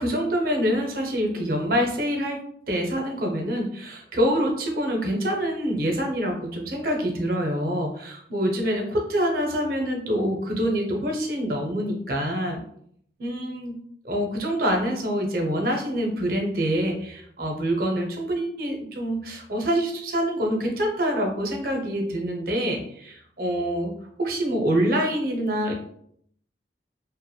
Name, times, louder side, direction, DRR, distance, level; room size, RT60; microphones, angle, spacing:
voice 1, 0.0-2.4 2.7-12.6 13.2-13.8 14.0-23.9 24.2-25.7, equal, 55° right, 2 dB, 0.5 m, -26 dB
2.8 x 2.0 x 2.2 m, 0.67 s
head